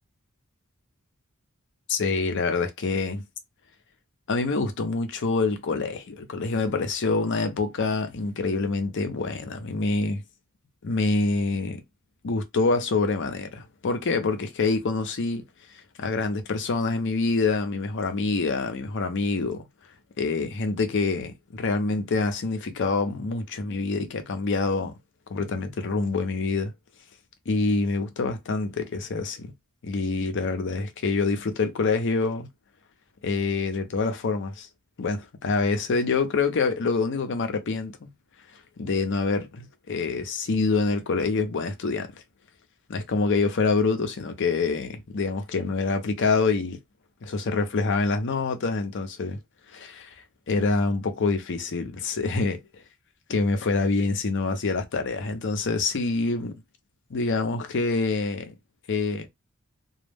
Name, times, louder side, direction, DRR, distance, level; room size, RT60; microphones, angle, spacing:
voice 1, 1.9-3.2 4.3-10.2 10.8-11.8 12.2-15.4 16.0-19.7 20.2-24.9 25.3-26.7 27.5-29.5 29.8-32.5 33.2-34.7 35.0-38.1 38.8-42.1 42.9-46.8 47.2-49.4 49.7-50.1 50.5-52.6 53.3-56.5 57.1-58.5 58.9-59.3, left 3 dB, 60° left, 0.6 m, -26 dB
2.2 x 2.0 x 3.2 m
head